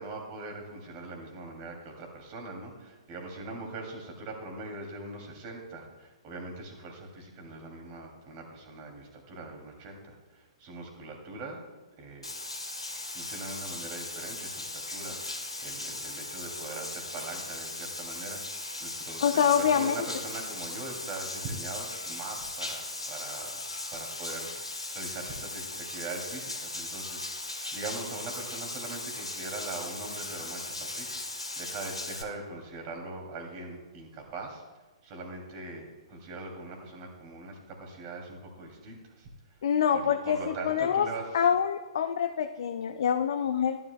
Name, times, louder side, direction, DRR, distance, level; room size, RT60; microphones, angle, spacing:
voice 1, 0.0-11.6 12.0-12.3 13.1-23.7 23.9-31.3 31.6-34.6 35.0-39.6 39.9-41.4, right 2 dB, 35° right, 2 dB, 2.7 m, -41 dB
Bathtub (filling or washing), 12.2-32.2, left 2 dB, 85° left, 1.4 m, -38 dB
voice 2, 19.2-19.9 39.6-40.4 40.6-41.1 41.3-43.8, left 8 dB, 60° left, 6 dB, 0.5 m, -25 dB
15.0 x 11.5 x 2.3 m, 1.2 s
figure-of-eight pair, 115°, 3 cm